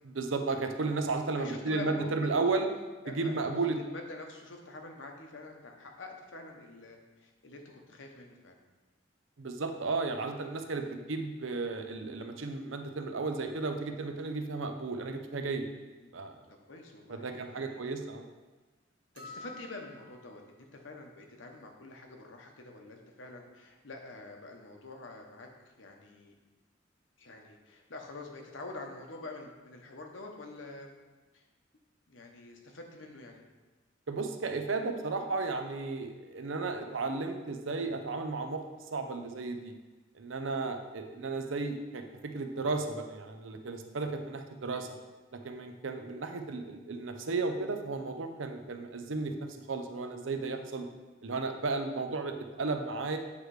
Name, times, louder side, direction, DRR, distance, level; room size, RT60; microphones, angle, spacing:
voice 1, 0.1-2.7 3.1-3.8 9.4-15.7 16.1-16.4 17.1-18.3 34.1-38.6 38.9-39.7 40.1-45.0 45.3-50.9 51.2-53.2, right 3 dB, 85° right, 6 dB, 0.7 m, -34 dB
voice 2, 1.4-2.1 3.0-3.4 3.8-8.6 10.8-10.9 16.0-16.1 16.7-17.8 19.1-25.5 25.8-26.3 27.2-30.9 31.3-31.4 32.1-33.4 46.2-46.3 50.7-50.9, left 2 dB, 75° left, 2 dB, 1.0 m, -46 dB
sound 1, 19.2-20.5, left 2 dB, 45° right, 1.3 m, -49 dB
8.4 x 3.2 x 4.8 m, 1.2 s
head